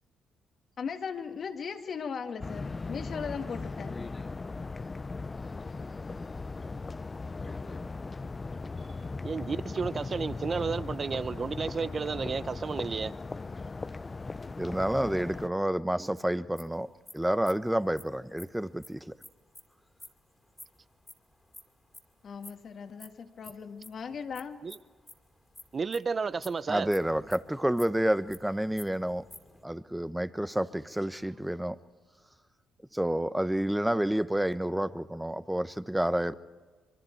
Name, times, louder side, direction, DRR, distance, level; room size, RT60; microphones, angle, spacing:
voice 1, 0.8-4.0 22.2-24.6, left 6 dB, 55° left, 1.9 m, -38 dB
sound 1, 2.4-15.5, left 3 dB, 30° left, 0.6 m, -38 dB
voice 2, 9.2-13.1 24.6-24.8 25.7-26.9, right 5 dB, 40° right, 0.7 m, -32 dB
voice 3, 14.6-16.9 17.1-19.1 26.7-29.2 29.6-31.8 32.9-36.3, right 1 dB, 5° right, 0.9 m, -29 dB
sound 2, 16.6-20.1 20.4-22.1 22.4-29.6, left 1 dB, 10° left, 2.7 m, -51 dB
25.5 x 23.0 x 4.6 m
supercardioid pair, 60°, 0 cm